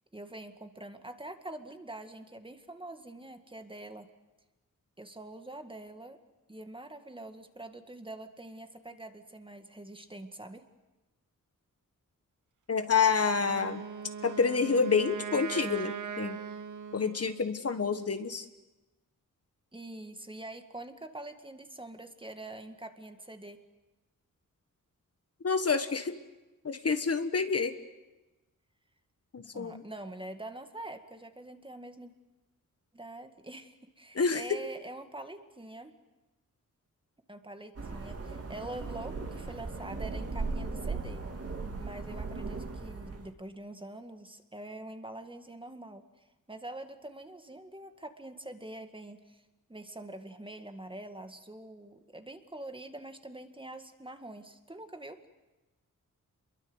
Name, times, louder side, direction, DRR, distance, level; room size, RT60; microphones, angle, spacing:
voice 1, 0.1-4.1 5.0-6.2 6.5-10.6 19.7-23.6 29.5-32.1 32.9-36.0 37.3-41.3 41.8-46.0 46.5-49.4 49.7-55.2, right 1 dB, 15° right, 7 dB, 2.0 m, -45 dB
voice 2, 12.7-13.8 14.2-16.4 16.9-18.4 25.4-26.2 26.6-27.7 29.3-29.8 34.1-34.6, left 5 dB, 45° left, 9 dB, 1.5 m, -28 dB
Wind instrument woodwind instrument, 13.4-17.5, right 7 dB, 65° right, 1.4 m, -40 dB
sound 1, 37.8-43.3, right 3 dB, 45° right, 2.9 m, -37 dB
28.0 x 22.5 x 8.0 m, 1.1 s
wide cardioid pair, 115°, 33 cm